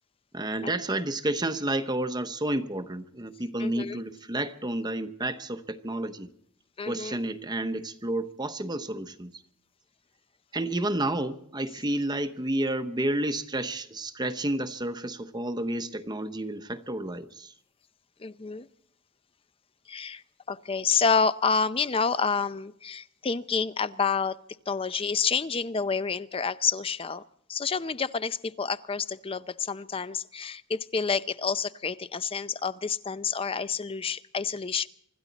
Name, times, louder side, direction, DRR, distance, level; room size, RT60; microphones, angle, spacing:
voice 1, 0.3-6.3 6.9-9.3 10.5-17.5, right 1 dB, 20° right, 10 dB, 0.9 m, -30 dB
voice 2, 3.6-4.0 6.8-7.2 18.2-18.7 19.9-20.2 20.5-24.4 24.7-27.2 27.5-34.9, left 5 dB, 25° left, 14 dB, 0.5 m, -28 dB
25.5 x 13.5 x 4.1 m, 0.69 s
head